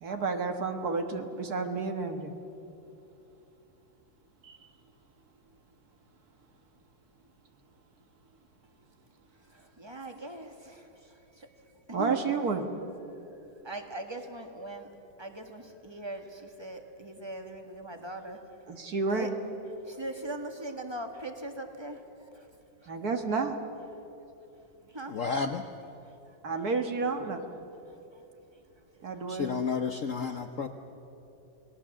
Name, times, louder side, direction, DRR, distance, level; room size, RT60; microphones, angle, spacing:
voice 1, 0.0-2.3 4.4-4.6 11.9-12.7 18.7-19.4 22.9-23.6 26.4-27.4 29.0-29.6, right 4 dB, 55° right, 5 dB, 1.8 m, -31 dB
voice 2, 9.5-10.9 11.4-11.5 11.9-12.2 13.6-14.9 15.2-18.4 19.1-19.3 19.9-22.0 24.9-25.2 25.8-25.9 30.2-30.3 30.6-30.7, right 1 dB, 15° right, 5 dB, 1.6 m, -40 dB
voice 3, 25.1-25.6 29.3-30.7, left 5 dB, 55° left, 6 dB, 1.0 m, -31 dB
28.5 x 19.0 x 7.5 m, 3.0 s
omnidirectional pair, 2.1 m